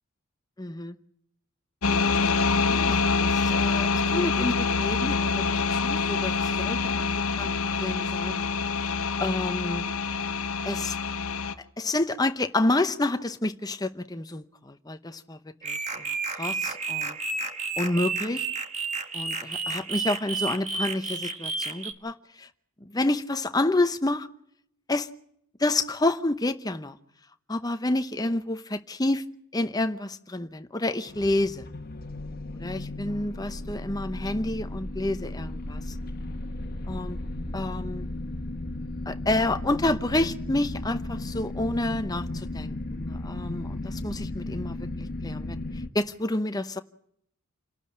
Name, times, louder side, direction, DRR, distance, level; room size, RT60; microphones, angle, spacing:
voice 1, 0.6-0.9 2.6-7.1 7.4-7.5 7.8-8.4 9.2-9.8 10.6-11.0 11.8-15.4 15.6-17.2 17.8-18.5 19.1-22.5 22.8-24.3 24.9-25.1 25.6-27.0 27.5-29.3 29.5-31.7 32.5-35.9 36.9-37.2 37.5-38.1 39.1-45.6 45.9-46.8, left 2 dB, 15° left, 0.8 m, -29 dB
sound 1, 1.8-11.5, left 4 dB, 80° left, 1.3 m, -26 dB
sound 2, 15.6-21.9, right 4 dB, 30° right, 1.7 m, -31 dB
sound 3, 31.1-45.9, left 1 dB, 45° left, 1.5 m, -35 dB
28.5 x 12.5 x 8.7 m
head